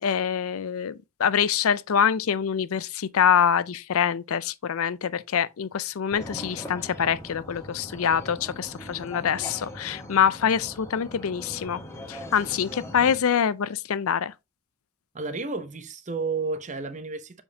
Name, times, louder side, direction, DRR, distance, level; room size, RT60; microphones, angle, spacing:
voice 1, 0.0-11.8 12.1-14.3, left 8 dB, 70° left, 0.5 m, -25 dB
sound 1, 6.1-13.2, left 1 dB, 15° left, 1.4 m, -41 dB
voice 2, 15.1-17.4, right 4 dB, 30° right, 0.7 m, -31 dB
7.1 x 5.3 x 2.8 m
head